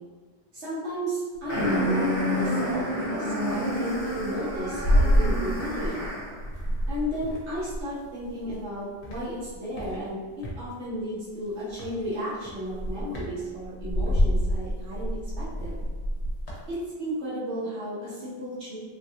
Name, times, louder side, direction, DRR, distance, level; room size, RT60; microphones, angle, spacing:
voice 1, 0.5-6.0 6.9-10.2 10.5-15.8 16.7-18.8, equal, 85° right, -9 dB, 1.4 m, -33 dB
sound 1, 1.5-6.4, equal, 60° left, 1.2 m, -28 dB
sound 2, 4.2-6.1 6.4-8.6 9.0-10.6 11.7-12.0 12.4-16.7, equal, 80° left, 1.0 m, -27 dB
3.3 x 2.4 x 2.7 m, 1.4 s
omnidirectional pair, 1.1 m